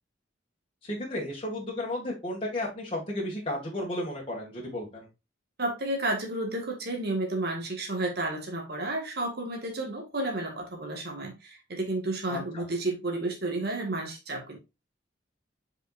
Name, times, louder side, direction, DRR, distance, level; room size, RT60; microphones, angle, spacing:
voice 1, 0.8-5.1 12.3-12.7, left 1 dB, 30° left, -4 dB, 2.1 m, -33 dB
voice 2, 5.6-14.6, right 2 dB, 55° right, 1 dB, 1.8 m, -31 dB
7.9 x 5.2 x 2.5 m, 0.25 s
head